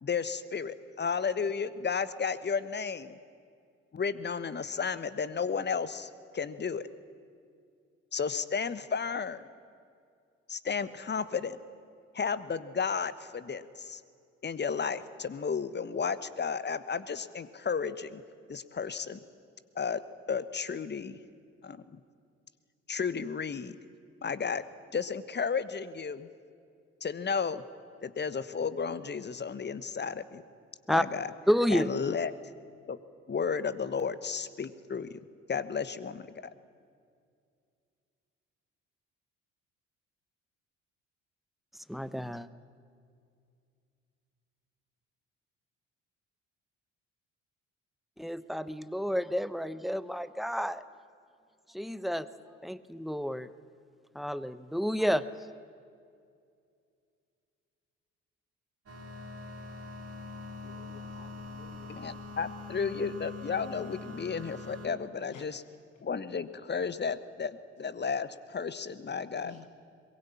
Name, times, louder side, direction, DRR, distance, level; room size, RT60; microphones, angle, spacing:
voice 1, 0.0-3.2 3.9-6.9 8.1-9.4 10.5-11.6 12.1-14.0 14.4-18.2 18.5-19.2 19.7-20.0 20.3-21.2 21.6-22.0 22.9-23.8 24.2-24.6 24.9-26.3 27.0-27.6 28.0-30.4 30.9-31.3 31.7-32.3 32.9-33.0 33.3-35.2 35.5-36.3 61.9-65.6 66.0-69.7, left 6 dB, 30° left, 14 dB, 1.2 m, -33 dB
voice 2, 31.5-31.9 41.9-42.5 48.2-50.8 51.7-52.3 52.6-53.5 54.1-55.2, equal, ahead, 15 dB, 1.0 m, -30 dB
sound 1, 58.9-64.9, left 3 dB, 40° right, 3.9 m, -43 dB
voice 3, 60.6-62.4 65.3-65.4 69.4-69.7, left 9 dB, 55° left, 5 dB, 1.5 m, -53 dB
22.5 x 22.0 x 8.6 m, 2.3 s
figure-of-eight pair, 50°, 37 cm